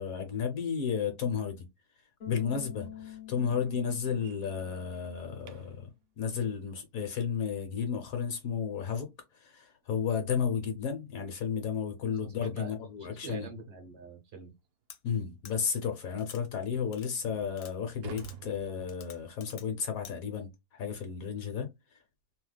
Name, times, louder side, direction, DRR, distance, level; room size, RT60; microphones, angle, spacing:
voice 1, 0.0-1.7 2.3-5.9 6.2-13.5 15.0-22.0, left 7 dB, 65° left, 1.0 m, -33 dB
Bass guitar, 2.2-5.3, left 10 dB, 50° left, 0.6 m, -47 dB
sound 1, 2.8-5.9 8.7-8.8 9.3-9.5 9.8-9.9 10.4-10.5 11.6-11.7 12.1-12.3 12.9-13.0 13.4-13.5 14.0-14.1 15.5-15.8 16.5-16.6 17.1-19.4, right 8 dB, 75° right, 1.1 m, -52 dB
voice 2, 12.2-14.5, right 4 dB, 55° right, 0.8 m, -46 dB
sound 2, 14.9-15.0 15.4-15.5 16.2-16.4 16.9-17.1 17.5-17.7 18.2-18.4 18.9-19.7 20.0-20.1, left 10 dB, 80° left, 1.2 m, -49 dB
2.9 x 2.1 x 3.2 m
omnidirectional pair, 1.8 m